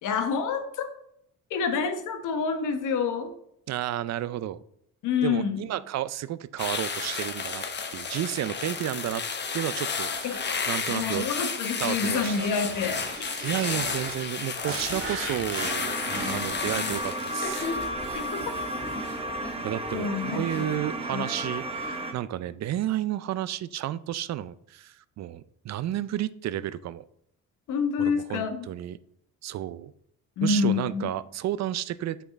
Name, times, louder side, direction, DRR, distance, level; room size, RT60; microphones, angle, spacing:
voice 1, 0.0-0.9 1.5-3.3 5.0-5.6 10.2-10.4 10.9-13.0 16.1-16.9 18.1-18.4 19.9-20.8 21.1-21.3 27.7-28.6 30.4-31.1, left 5 dB, 85° left, 7 dB, 1.1 m, -28 dB
voice 2, 3.7-4.6 5.2-7.6 7.9-9.2 9.5-11.3 11.8-12.5 13.4-16.0 16.3-17.7 19.6-27.0 28.0-29.0 29.4-29.9 30.4-32.2, right 12 dB, 60° right, 16 dB, 0.5 m, -32 dB
sound 1, 6.6-19.9 20.3-20.6, left 5 dB, 35° left, 0.9 m, -33 dB
sound 2, 12.1-16.7, right 4 dB, 45° right, 1.4 m, -38 dB
sound 3, 15.6-22.1, right 1 dB, 20° right, 1.0 m, -33 dB
6.3 x 5.7 x 4.0 m, 0.72 s
cardioid pair, 90°, 30 cm